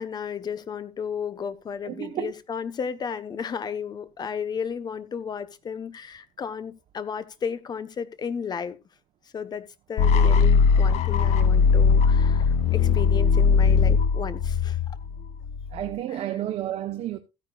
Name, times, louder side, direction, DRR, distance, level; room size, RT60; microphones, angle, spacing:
voice 1, 0.0-8.8 9.3-14.8, left 7 dB, 30° left, 1.1 m, -33 dB
voice 2, 1.8-2.3 15.7-17.2, right 12 dB, 50° right, 1.0 m, -31 dB
sound 1, 10.0-15.9, left 5 dB, 55° left, 1.0 m, -20 dB
15.0 x 9.6 x 2.4 m
cardioid pair, 135°, 14 cm